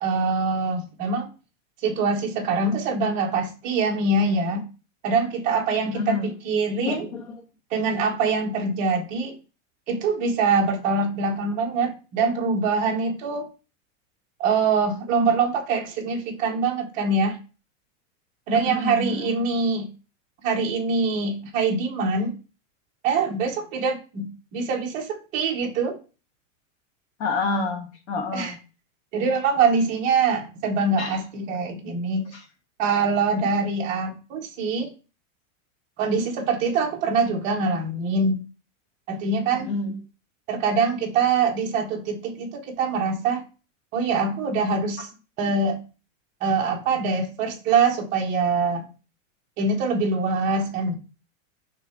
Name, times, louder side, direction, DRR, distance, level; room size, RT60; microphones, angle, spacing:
voice 1, 0.0-1.3 1.8-4.6 5.0-7.1 7.7-9.3 9.9-13.5 14.4-17.4 18.5-19.9 20.4-22.4 23.0-26.0 28.3-28.5 29.1-32.3 32.8-34.9 36.0-38.4 39.1-39.7 40.5-43.4 43.9-45.1 45.4-45.8 46.4-48.8 49.6-50.9, right 4 dB, 20° right, 0 dB, 0.8 m, -24 dB
voice 2, 5.8-6.3 6.8-7.3 18.5-19.4 27.2-28.6 31.0-31.2 32.3-32.4 39.5-40.0, left 3 dB, 60° left, 0 dB, 1.3 m, -28 dB
6.0 x 3.2 x 4.8 m, 0.34 s
supercardioid pair, 180°, 39 cm